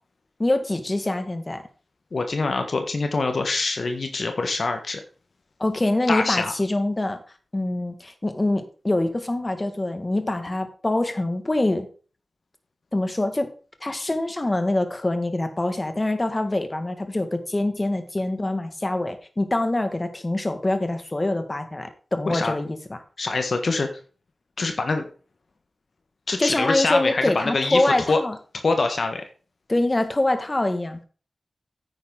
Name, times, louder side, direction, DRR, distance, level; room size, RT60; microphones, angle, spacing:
voice 1, 0.4-1.6 5.6-7.2 7.5-11.9 12.9-13.5 13.8-23.0 26.4-28.4 29.7-31.0, left 2 dB, 30° left, 8 dB, 1.9 m, -24 dB
voice 2, 2.1-5.0 6.1-6.5 22.3-22.5 23.2-23.9 24.6-25.1 26.3-28.2 28.6-29.2, left 3 dB, 70° left, 6 dB, 1.4 m, -24 dB
9.5 x 9.4 x 3.9 m, 0.37 s
cardioid pair, 55°, 0 cm